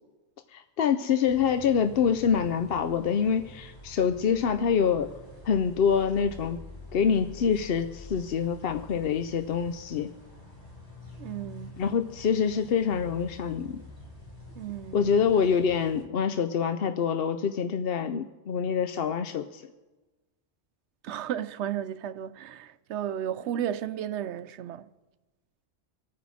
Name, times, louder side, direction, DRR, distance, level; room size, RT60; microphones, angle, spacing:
voice 1, 0.5-5.1 5.4-6.6 6.9-10.1 11.8-13.8 14.9-19.6, left 7 dB, 65° left, 0.8 m, -26 dB
sound 1, 1.3-16.0, left 1 dB, 25° left, 3.5 m, -47 dB
voice 2, 11.2-11.8 14.6-15.1 21.0-24.9, right 10 dB, 80° right, 0.9 m, -33 dB
26.0 x 9.2 x 4.2 m
omnidirectional pair, 1.1 m